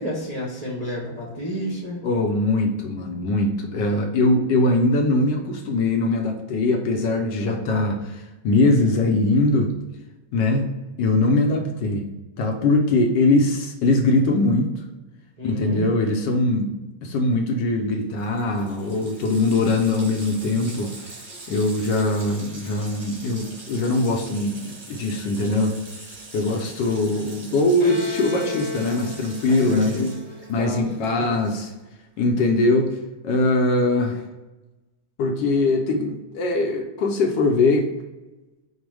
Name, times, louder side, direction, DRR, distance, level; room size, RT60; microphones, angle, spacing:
voice 1, 0.0-2.0 11.5-11.8 15.4-15.9 29.5-30.1 30.6-30.9 31.1-31.4, equal, 90° right, -5 dB, 0.3 m, -30 dB
voice 2, 2.0-9.7 10.3-10.7 11.0-12.1 12.4-14.7 15.4-16.7 17.0-20.9 21.5-25.8 26.3-30.1 30.5-31.7 32.2-34.2 35.2-37.9, left 2 dB, 75° left, 3 dB, 1.1 m, -21 dB
Water tap faucet, 17.8-17.9 18.1-31.9, right 2 dB, 30° right, 1.1 m, -43 dB
Bowed string instrument, 27.8-31.4, left 3 dB, 55° left, 0.4 m, -35 dB
5.1 x 2.1 x 4.6 m, 1.1 s
omnidirectional pair, 2.3 m